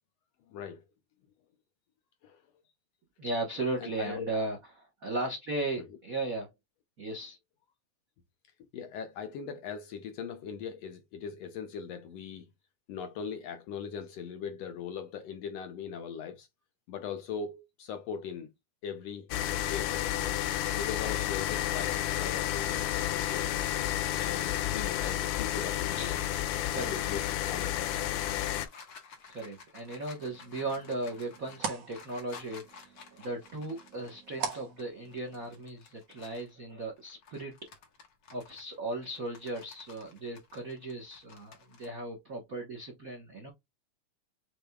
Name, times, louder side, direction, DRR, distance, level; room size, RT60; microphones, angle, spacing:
voice 1, 0.5-0.8 2.2-2.4 3.8-4.3 5.8-5.9 8.7-12.5 12.9-16.5 16.9-18.5 18.8-19.3 19.6-20.3 20.7-23.6 24.1-26.2 26.7-28.5, left 7 dB, 75° left, 1.6 m, -40 dB
voice 2, 3.2-6.5 7.0-7.4 25.9-26.2 26.7-27.0 29.3-37.5 38.3-43.5, right 2 dB, 80° right, 0.7 m, -37 dB
sound 1, 19.3-28.7, left 12 dB, 90° left, 2.3 m, -31 dB
sound 2, 25.8-36.5 37.0-41.9, left 5 dB, 50° left, 1.5 m, -53 dB
sound 3, 30.2-35.6, right 6 dB, 60° right, 2.1 m, -43 dB
7.0 x 3.3 x 2.3 m
omnidirectional pair, 3.6 m